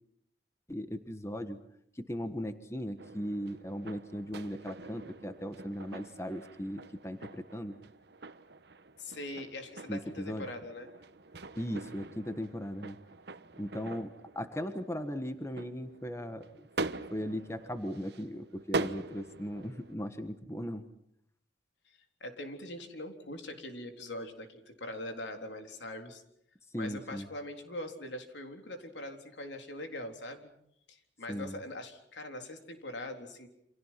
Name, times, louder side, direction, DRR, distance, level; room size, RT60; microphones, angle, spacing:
voice 1, 0.7-1.6 1.9-7.7 9.9-10.5 11.6-13.0 13.6-16.7 17.1-20.8 26.7-27.3 31.3-31.6, equal, 15° left, 8 dB, 1.4 m, -38 dB
sound 1, 3.0-20.0, right 3 dB, 65° right, 1.2 m, -43 dB
voice 2, 9.0-10.9 21.9-26.2 26.7-30.5 30.9-33.5, left 1 dB, 75° left, 5 dB, 3.8 m, -42 dB
29.0 x 27.0 x 5.9 m, 0.72 s
head